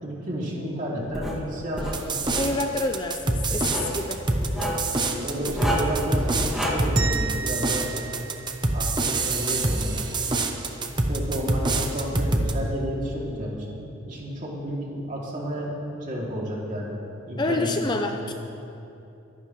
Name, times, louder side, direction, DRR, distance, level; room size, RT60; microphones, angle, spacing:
voice 1, 0.0-2.0 5.0-8.1 8.7-10.0 11.1-13.8 14.1-15.7 16.0-16.9 17.3-17.9 18.1-18.3, equal, 40° right, -4 dB, 2.7 m, -31 dB
Writing, 1.1-1.4 1.8-2.5 3.5-4.0 4.4-4.8 5.5-6.0 6.4-6.7, equal, ahead, 2.1 m, -29 dB
sound 1, 1.9-12.5, right 2 dB, 20° right, 0.8 m, -25 dB
voice 2, 2.4-4.2 17.4-18.3, left 2 dB, 20° left, 4 dB, 0.5 m, -27 dB
sound 2, 7.0-9.2, right 6 dB, 75° right, 1.4 m, -34 dB
24.0 x 11.5 x 3.2 m, 2.9 s
head